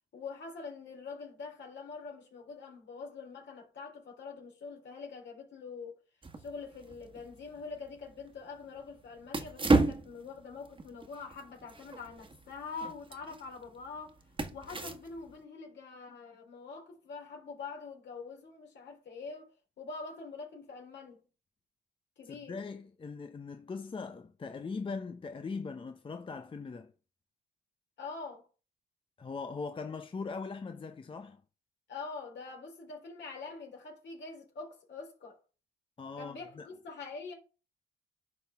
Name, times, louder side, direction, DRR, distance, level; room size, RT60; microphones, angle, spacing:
voice 1, 0.1-6.0 6.4-14.2 14.5-19.5 19.8-21.2 22.2-22.6 28.0-28.5 31.9-35.4 36.2-37.3, left 4 dB, 65° left, 3.6 m, -44 dB
sound 1, 6.2-15.4, right 3 dB, 25° right, 1.5 m, -35 dB
voice 2, 22.2-26.9 29.2-31.4 36.0-36.7, left 4 dB, 25° left, 0.7 m, -40 dB
10.0 x 5.7 x 3.5 m
cardioid pair, 90°, 20 cm